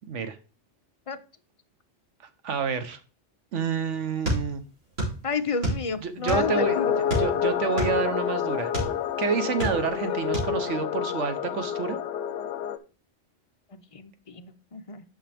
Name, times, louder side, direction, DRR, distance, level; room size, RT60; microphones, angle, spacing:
voice 1, 2.4-3.0 3.5-4.6 5.9-8.7 9.2-12.0, right 6 dB, 80° right, 9 dB, 1.3 m, -29 dB
sound 1, 4.2-5.2 5.4-6.6 7.1-9.0 9.4-10.0 10.3-10.5, right 1 dB, 60° right, 3.3 m, -28 dB
voice 2, 5.2-6.9 10.0-10.2 13.7-15.0, left 5 dB, 40° left, 9 dB, 0.5 m, -31 dB
sound 2, 6.3-12.8, left 9 dB, 75° left, 0.9 m, -28 dB
8.7 x 5.8 x 3.4 m, 0.36 s
omnidirectional pair, 1.2 m